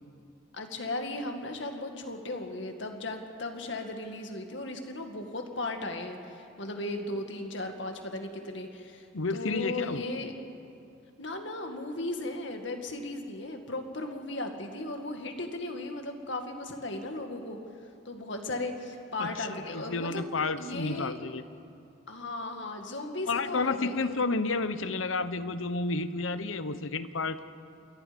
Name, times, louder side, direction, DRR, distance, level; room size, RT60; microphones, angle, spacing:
voice 1, 0.5-9.1 9.3-10.3 11.2-17.6 18.1-20.2 20.6-21.1 22.1-24.2, left 2 dB, 70° left, 4 dB, 2.1 m, -36 dB
voice 2, 9.1-10.0 19.2-21.4 23.3-27.4, left 3 dB, 90° left, 12 dB, 1.0 m, -31 dB
28.0 x 23.5 x 5.3 m, 2.6 s
head